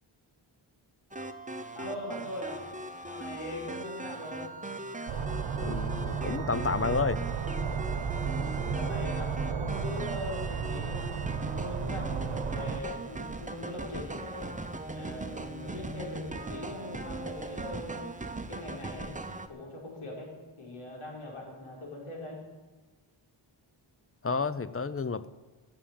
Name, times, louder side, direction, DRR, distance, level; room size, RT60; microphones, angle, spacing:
sound 1, 1.1-19.5, right 2 dB, 15° right, 0.9 m, -40 dB
voice 1, 1.7-2.6 3.0-4.5 8.3-11.0 11.5-14.5 14.9-18.1 18.5-19.2 19.5-22.4, left 1 dB, 80° left, -1 dB, 4.8 m, -41 dB
sound 2, 5.1-12.8, right 6 dB, 90° right, 1.1 m, -33 dB
voice 2, 5.6-7.2 24.2-25.3, left 4 dB, 30° left, 15 dB, 0.6 m, -30 dB
14.5 x 7.7 x 8.8 m, 1.3 s
wide cardioid pair, 100°, 49 cm